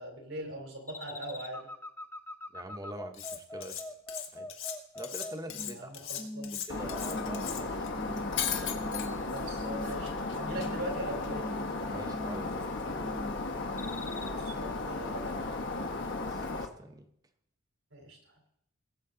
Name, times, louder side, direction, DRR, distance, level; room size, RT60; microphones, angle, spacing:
voice 1, 0.0-1.7 5.6-6.5 7.7-8.0 9.2-11.5 14.3-15.6 17.9-18.3, right 1 dB, 80° right, 2 dB, 3.5 m, -41 dB
sound 1, 0.9-5.8 6.2-6.7 7.0-7.5 7.9-8.3 8.7-9.3 9.6-10.1 10.4-10.9 11.2-11.7 12.1-12.6 13.0-13.4 13.8-14.3, left 1 dB, 10° left, 0.5 m, -42 dB
voice 2, 2.5-3.8 4.3-4.5 4.9-5.9 6.5-8.0 11.9-13.0 16.0-17.1, right 1 dB, 20° right, 7 dB, 1.0 m, -45 dB
Cutlery silverware, 3.1-3.8 4.1-7.9, left 10 dB, 80° left, 1.6 m, -39 dB
Shatter, 6.7-16.7, left 3 dB, 65° left, 1.2 m, -35 dB
19.5 x 7.7 x 3.9 m, 0.74 s
head